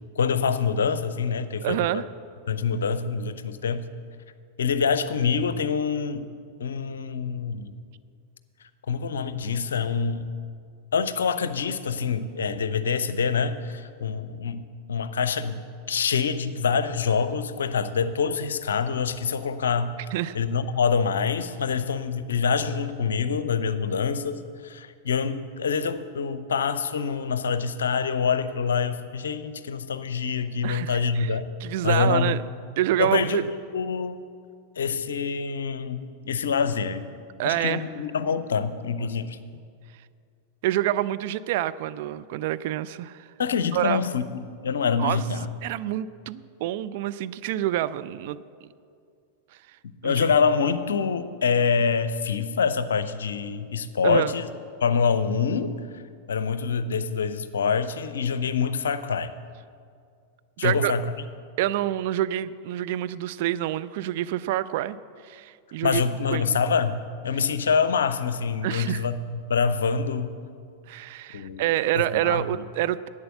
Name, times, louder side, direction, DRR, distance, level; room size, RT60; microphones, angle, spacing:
voice 1, 0.2-2.0 2.5-3.8 4.6-6.3 6.6-7.7 8.9-10.3 10.9-14.6 14.9-15.6 15.9-19.9 20.3-31.5 31.8-32.4 33.0-33.5 33.7-34.2 34.8-37.1 37.4-39.4 43.4-45.5 50.0-54.5 54.8-56.0 56.3-59.3 60.6-61.0 65.8-69.1 69.5-70.3 71.3-71.7 71.9-72.6, left 6 dB, 65° left, 12 dB, 0.6 m, -26 dB
voice 2, 1.6-2.1 20.1-20.4 30.6-31.3 31.6-32.4 32.8-33.4 37.4-37.8 40.6-43.3 43.7-44.0 45.0-45.2 45.6-48.7 49.7-49.8 50.0-50.3 54.0-54.3 60.6-60.9 61.6-65.0 65.2-66.0 66.3-66.5 68.6-69.1 70.9-73.1, right 13 dB, 50° right, 13 dB, 0.4 m, -27 dB
11.0 x 8.6 x 7.6 m, 2.2 s
figure-of-eight pair, 90°, 0 cm